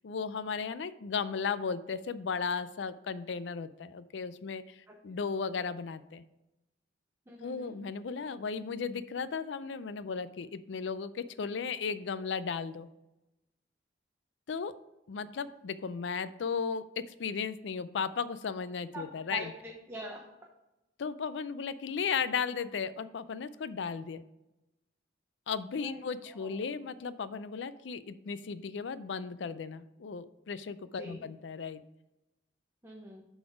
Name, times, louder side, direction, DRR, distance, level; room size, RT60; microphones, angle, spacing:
voice 1, 0.0-6.2 7.4-12.9 14.5-14.7 15.1-19.5 21.0-24.2 25.5-31.8, left 5 dB, 70° left, 14 dB, 0.4 m, -35 dB
voice 2, 7.3-7.7 18.9-20.2 25.8-26.7 31.0-31.2 32.8-33.2, right 1 dB, 15° right, -1 dB, 0.8 m, -44 dB
7.6 x 4.0 x 4.8 m, 0.94 s
head